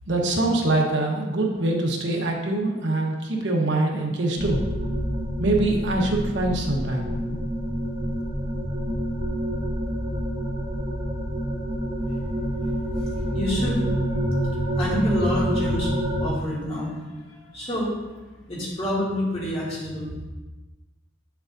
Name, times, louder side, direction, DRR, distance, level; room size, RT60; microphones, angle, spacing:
voice 1, 0.1-4.7 5.4-7.4, right 2 dB, 80° right, 0 dB, 1.1 m, -24 dB
sound 1, 4.4-16.3, equal, 50° right, 1.3 m, -27 dB
voice 2, 13.3-13.9 14.8-15.9 16.2-17.9 18.3-20.1, equal, 35° left, -7 dB, 2.4 m, -28 dB
8.0 x 6.9 x 2.6 m, 1.2 s
head